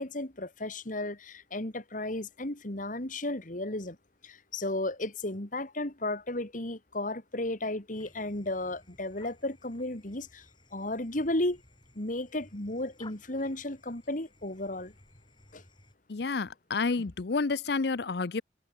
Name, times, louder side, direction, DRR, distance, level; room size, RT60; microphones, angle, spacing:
voice 1, 0.0-4.0 4.2-10.5 10.7-11.6 12.0-14.9 15.5-15.6, left 1 dB, 45° left, 2.6 m, -34 dB
sound 1, 7.9-15.9, left 2 dB, 25° left, 6.4 m, -58 dB
voice 2, 16.1-18.4, left 4 dB, 60° left, 0.6 m, -30 dB
head